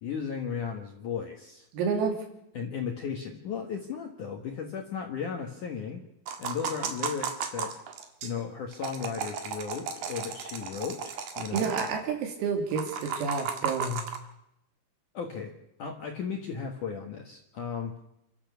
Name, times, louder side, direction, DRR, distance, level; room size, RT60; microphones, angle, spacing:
voice 1, 0.0-1.7 2.5-6.0 6.4-7.7 8.2-11.7 15.1-15.5 15.8-17.9, left 6 dB, 65° left, 3 dB, 2.0 m, -35 dB
voice 2, 1.7-2.2 11.5-14.0, right 5 dB, 85° right, 4 dB, 5.8 m, -29 dB
sound 1, 6.3-8.3 8.7-11.9 12.7-14.2, right 6 dB, 60° right, 3.0 m, -35 dB
29.0 x 13.0 x 6.9 m, 0.83 s
omnidirectional pair, 5.9 m